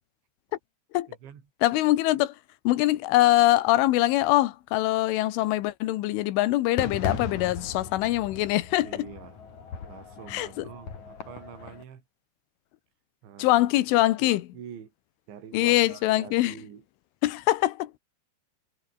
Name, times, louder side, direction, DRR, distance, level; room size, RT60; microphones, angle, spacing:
voice 1, 1.1-1.4 8.8-9.4 9.9-12.0 13.2-13.8 14.2-14.9 15.3-16.8, right 8 dB, 70° right, 5.9 m, -45 dB
voice 2, 1.6-2.4 2.7-9.1 10.3-10.7 13.4-14.4 15.5-16.6 17.2-17.9, left 16 dB, 85° left, 3.7 m, -23 dB
Fireworks, 6.8-11.8, left 6 dB, 40° left, 4.8 m, -37 dB
omnidirectional pair, 5.5 m